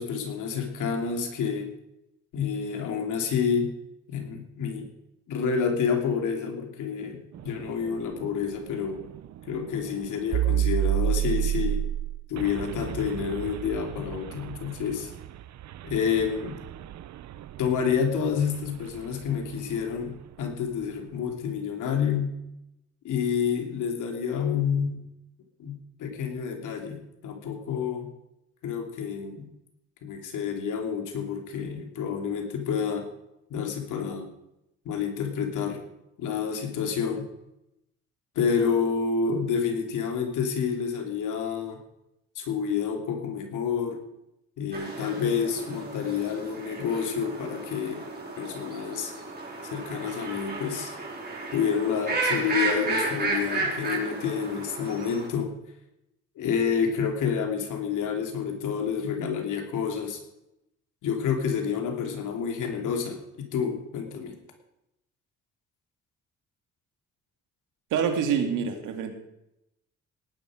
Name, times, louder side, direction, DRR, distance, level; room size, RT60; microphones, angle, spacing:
voice 1, 0.0-1.7 2.3-3.7 4.1-4.9 5.3-9.0 9.5-11.8 12.3-15.1 15.8-16.6 17.6-22.4 23.0-25.0 25.6-28.1 28.6-29.5 30.0-33.1 33.5-34.3 34.8-35.8 36.2-37.3 38.3-41.8 42.3-44.0 44.6-48.1 48.4-49.1 49.7-50.9 51.5-55.5 56.4-60.2 61.0-64.4, left 6 dB, 85° left, 3 dB, 3.0 m, -29 dB
sound 1, 7.3-20.1, right 12 dB, 65° right, 0.7 m, -32 dB
sound 2, 44.7-55.3, right 3 dB, 30° right, 4.5 m, -33 dB
voice 2, 67.9-69.1, right 7 dB, 85° right, 5 dB, 2.3 m, -26 dB
18.0 x 10.5 x 5.0 m, 0.85 s
cardioid pair, 90°, 30 cm